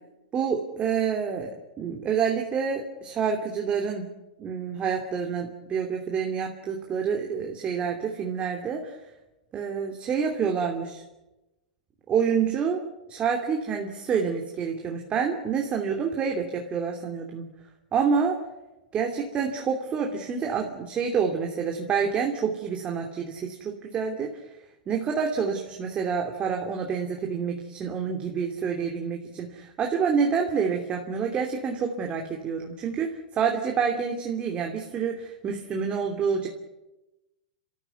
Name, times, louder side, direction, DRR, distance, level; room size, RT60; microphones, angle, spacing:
voice 1, 0.3-4.1 4.4-9.0 9.5-11.0 12.1-12.8 13.1-17.5 17.9-18.4 18.9-24.4 24.9-36.5, right 6 dB, 25° right, 2 dB, 2.9 m, -28 dB
30.0 x 14.0 x 9.4 m, 1.0 s
hypercardioid pair, 120°, 4 cm